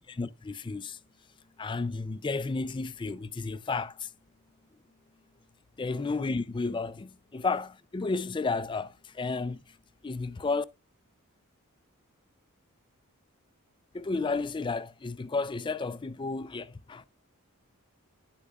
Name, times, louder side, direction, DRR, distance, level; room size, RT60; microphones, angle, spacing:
voice 1, 0.2-1.0 1.6-4.1 5.8-9.6 10.0-10.6 13.9-17.0, left 3 dB, 20° left, 0.4 m, -32 dB
10.5 x 8.3 x 2.3 m
head